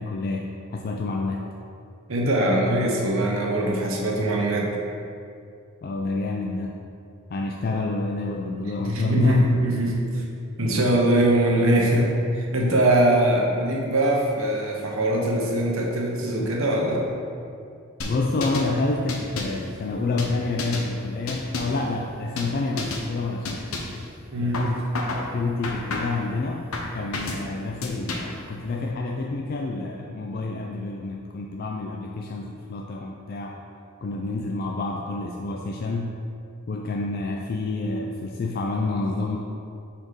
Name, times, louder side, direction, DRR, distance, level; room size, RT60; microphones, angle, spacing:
voice 1, 0.0-1.5 2.5-2.6 5.8-6.8 7.3-9.4 18.0-23.8 24.4-24.8 25.2-26.7 26.9-33.6 34.0-36.1 36.7-39.4, left 3 dB, 45° left, 0 dB, 0.3 m, -28 dB
voice 2, 2.1-4.7 8.8-10.2 10.6-17.1 24.3-24.7, right 1 dB, 70° right, -1 dB, 0.9 m, -22 dB
sound 1, 18.0-18.7 19.1-19.6 20.2-20.9 21.3-21.8 22.4-22.5 22.8-23.1 23.4-24.0 24.5-25.3 25.6-26.2 26.7-27.4 27.8-28.4, left 2 dB, 80° left, 0.7 m, -31 dB
4.6 x 4.3 x 5.1 m, 2.5 s
head